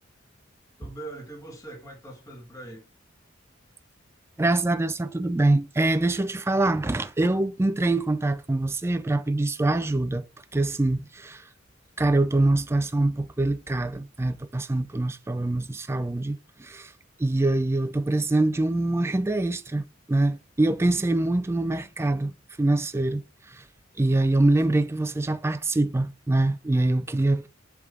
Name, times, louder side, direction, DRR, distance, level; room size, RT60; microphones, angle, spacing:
voice 1, 0.8-2.9, right 2 dB, 20° left, 1.9 m, -41 dB
voice 2, 4.4-10.3 10.5-11.4 12.0-16.9 17.2-22.3 22.6-23.2 23.5-23.6 24.0-27.5, right 2 dB, 15° right, 0.4 m, -24 dB
7.7 x 3.5 x 3.7 m
head